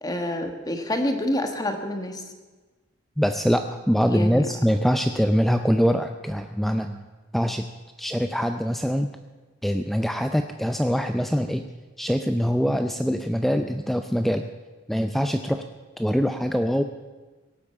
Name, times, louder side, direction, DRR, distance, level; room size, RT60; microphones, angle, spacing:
voice 1, 0.0-2.2 4.1-4.4, left 1 dB, 20° left, 5 dB, 1.5 m, -27 dB
voice 2, 3.2-7.0 7.3-7.7 8.0-9.1 9.6-11.6 12.0-14.5 14.9-15.6 16.0-16.8, equal, ahead, 7 dB, 0.5 m, -23 dB
17.5 x 8.5 x 8.5 m, 1.3 s
head